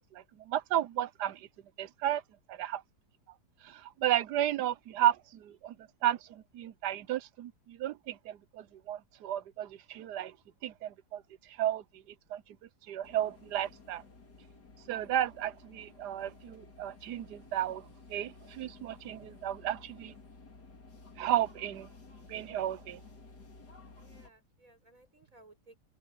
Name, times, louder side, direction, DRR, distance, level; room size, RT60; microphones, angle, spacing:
voice 1, 0.0-1.5 1.8-2.2 2.5-2.8 3.6-5.7 6.0-10.3 10.6-11.2 11.6-11.8 12.3-12.4 12.9-14.0 14.9-20.1 21.2-21.9 22.3-23.0, right 12 dB, 75° right, 1.3 m, -33 dB
sound 1, 13.0-24.3, left 3 dB, 70° left, 3.6 m, -54 dB
voice 2, 24.0-25.8, right 2 dB, 50° right, 6.4 m, -60 dB
omnidirectional pair, 1.8 m